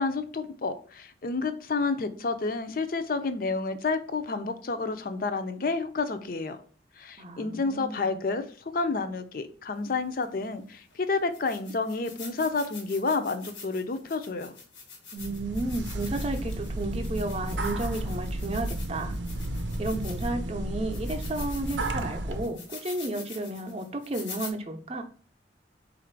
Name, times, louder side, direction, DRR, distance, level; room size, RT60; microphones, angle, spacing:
voice 1, 0.0-6.6 7.0-14.5, left 3 dB, 50° left, 0.5 m, -30 dB
voice 2, 7.2-8.1 15.1-19.1 19.8-25.0, right 2 dB, 35° right, 0.6 m, -33 dB
sound 1, 10.2-10.3 10.9-11.0 11.3-20.5 20.9-24.5, left 5 dB, 85° left, 1.3 m, -45 dB
sound 2, 15.2-22.5, right 1 dB, 85° right, 0.6 m, -33 dB
4.0 x 2.5 x 4.5 m
head